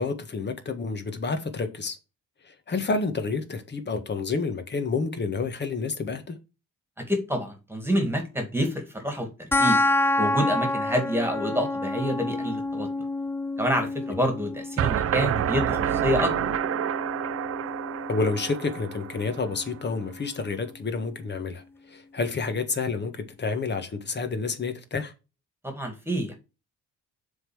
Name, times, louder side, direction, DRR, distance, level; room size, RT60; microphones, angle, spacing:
voice 1, 0.0-1.9 2.4-6.3 18.1-25.1, left 4 dB, 35° left, 1.6 m, -29 dB
voice 2, 7.0-9.8 10.2-12.9 13.6-16.3 25.6-26.4, equal, 10° right, 2.3 m, -27 dB
sound 1, 9.5-20.5, left 2 dB, 10° left, 0.3 m, -29 dB
sound 2, 14.8-19.7, right 11 dB, 55° right, 0.5 m, -28 dB
7.0 x 3.9 x 6.2 m
cardioid pair, 90°, 30 cm